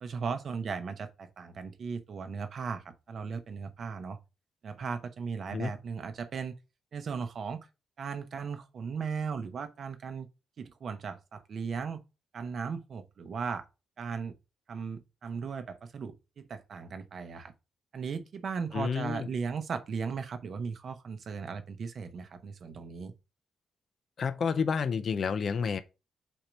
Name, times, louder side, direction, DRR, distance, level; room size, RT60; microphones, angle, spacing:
voice 1, 0.0-4.2 4.6-6.5 6.9-7.7 8.0-10.3 10.6-12.0 12.3-13.6 14.0-14.3 14.7-17.5 17.9-23.1, right 5 dB, 45° right, 0.7 m, -37 dB
voice 2, 18.7-19.3 24.2-25.8, left 6 dB, 40° left, 0.4 m, -30 dB
4.5 x 4.3 x 5.1 m
wide cardioid pair, 175°, 0 cm